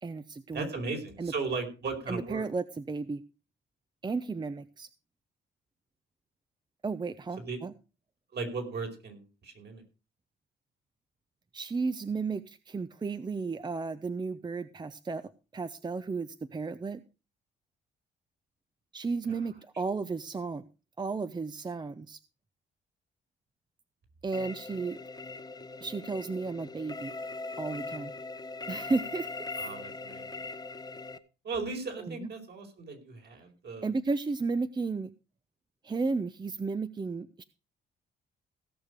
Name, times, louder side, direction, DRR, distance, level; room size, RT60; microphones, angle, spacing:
voice 1, 0.0-0.7 1.2-1.3 2.1-3.2 4.0-4.9 6.8-7.7 11.5-15.2 15.5-17.0 18.9-20.6 21.0-22.2 24.2-25.0 25.8-27.1 27.6-28.1 28.7-29.5 32.0-32.3 33.8-35.1 35.8-37.4, right 4 dB, 20° right, 13 dB, 0.7 m, -33 dB
voice 2, 0.5-2.4 7.4-7.6 8.3-9.8 29.6-30.4 31.4-33.9, right 4 dB, 55° right, 4 dB, 5.1 m, -37 dB
sound 1, 24.3-31.2, left 3 dB, 20° left, 1.0 m, -40 dB
17.0 x 6.6 x 5.2 m, 0.33 s
cardioid pair, 90°, 20 cm